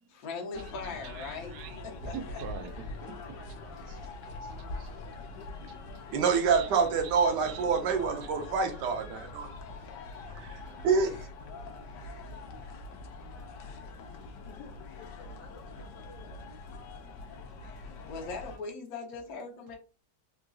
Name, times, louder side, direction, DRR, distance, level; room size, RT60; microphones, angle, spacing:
voice 1, 0.1-1.5 1.8-2.1 18.1-19.8, left 4 dB, 65° left, 1.1 m, -39 dB
sound 1, 0.5-18.6, left 3 dB, 90° left, 1.2 m, -44 dB
voice 2, 1.0-4.1 4.4-6.2 6.5-7.8 8.2-8.5 10.4-10.8 12.0-12.2 12.6-13.2 14.8-16.1 17.1-17.7 17.9-18.0, right 8 dB, 70° right, 1.0 m, -48 dB
voice 3, 6.1-9.5 10.3-11.2, right 5 dB, 90° right, 1.3 m, -27 dB
3.8 x 2.5 x 2.3 m
omnidirectional pair, 1.8 m